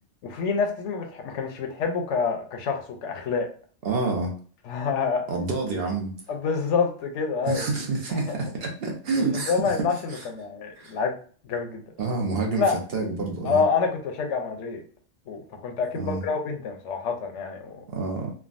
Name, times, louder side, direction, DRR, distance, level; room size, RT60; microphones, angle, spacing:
voice 1, 0.2-3.5 4.7-5.3 6.3-7.7 8.3-8.4 9.3-11.1 11.4-11.8 12.6-12.8 13.4-14.8 15.3-17.8, left 5 dB, 75° left, 4 dB, 0.9 m, -27 dB
voice 2, 3.8-4.3 5.3-6.2 7.5-10.2 10.8-10.9 12.0-12.6 12.9-13.6 15.9-16.2 17.9-18.3, right 3 dB, 55° right, 0 dB, 0.8 m, -28 dB
3.4 x 2.1 x 2.4 m, 0.44 s
omnidirectional pair, 1.3 m